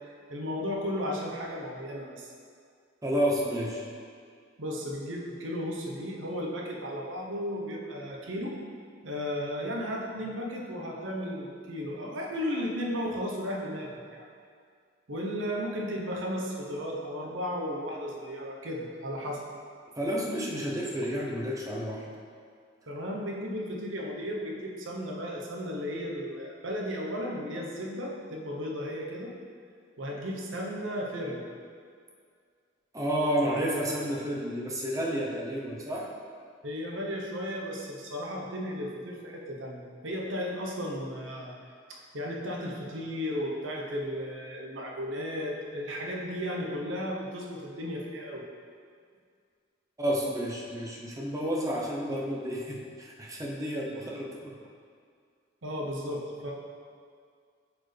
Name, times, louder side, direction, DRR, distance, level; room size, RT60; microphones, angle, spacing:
voice 1, 0.0-2.3 4.6-8.6 9.0-14.3 15.1-19.4 22.9-29.3 30.0-31.5 36.6-41.5 41.9-48.4 55.6-56.5, equal, 80° right, -1 dB, 0.9 m, -34 dB
voice 2, 3.0-3.9 20.0-22.0 32.9-36.1 50.0-54.5, equal, 15° right, -2 dB, 0.8 m, -30 dB
8.0 x 4.5 x 3.3 m, 2.2 s
head